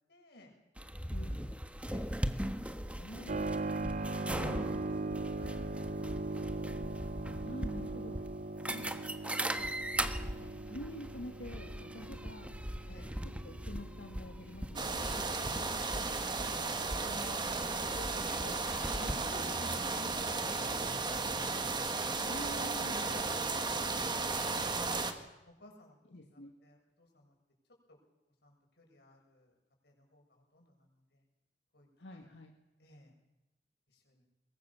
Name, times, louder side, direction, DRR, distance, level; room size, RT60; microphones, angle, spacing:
voice 1, 0.1-0.5 1.1-2.0 2.4-3.9 5.2-5.6 8.6-9.0 10.5-10.7 12.9-13.1 15.0-16.1 16.4-21.3 23.4-23.7 24.8-25.1 25.4-26.0 26.6-27.3 27.9-28.0 28.4-29.5 29.8-31.2 31.7-32.3 32.8-33.1 33.9-34.3, left 1 dB, 65° left, 1 dB, 6.8 m, -54 dB
sound 1, 0.8-19.1, right 1 dB, 5° right, 1.3 m, -40 dB
Keyboard (musical), 3.3-15.7, right 2 dB, 45° right, 0.8 m, -40 dB
voice 2, 7.4-8.2 9.4-12.5 13.2-15.1 19.3-19.5 22.2-23.4 26.1-26.5 32.0-32.5, left 1 dB, 85° left, 3 dB, 1.9 m, -48 dB
sound 2, 14.8-25.1, right 3 dB, 25° right, 1.8 m, -34 dB
23.0 x 22.0 x 7.2 m, 0.97 s
head